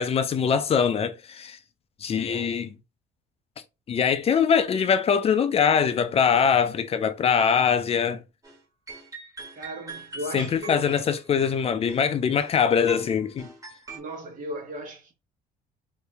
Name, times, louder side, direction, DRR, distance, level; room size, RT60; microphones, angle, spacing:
voice 1, 0.0-1.6 2.0-2.7 3.9-8.2 10.3-13.5, left 7 dB, 35° left, 0.4 m, -23 dB
voice 2, 2.1-2.5 9.5-10.9 13.9-15.1, right 1 dB, 50° right, 1.4 m, -37 dB
sound 1, 8.4-8.6 8.9-12.6 12.9-14.0, right 3 dB, 20° right, 1.5 m, -43 dB
2.7 x 2.7 x 3.3 m
cardioid pair, 110°, 17 cm